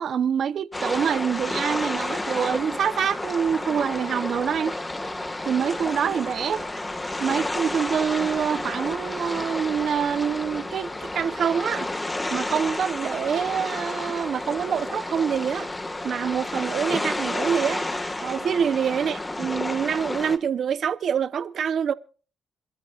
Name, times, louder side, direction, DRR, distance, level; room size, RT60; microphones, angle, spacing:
voice 1, 0.0-4.8 5.4-6.6 7.2-11.9 12.3-15.7 16.0-17.8 18.2-21.9, right 7 dB, 60° right, 1.0 m, -26 dB
sound 1, 0.7-20.4, left 2 dB, 15° left, 1.8 m, -31 dB
27.5 x 13.5 x 2.5 m
cardioid pair, 90°, 0 cm